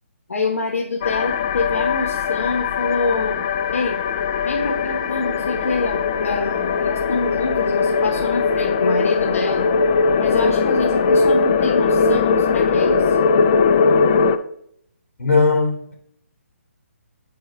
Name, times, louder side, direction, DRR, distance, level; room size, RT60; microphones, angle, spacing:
voice 1, 0.3-3.4 3.7-4.0 4.4-9.7 10.2-13.2, left 3 dB, 75° left, 1.2 m, -26 dB
sound 1, 1.0-14.4, left 5 dB, 25° left, 0.3 m, -19 dB
voice 2, 15.2-15.9, left 4 dB, 60° left, 2.7 m, -18 dB
8.8 x 4.1 x 3.7 m
hypercardioid pair, 160°, 8 cm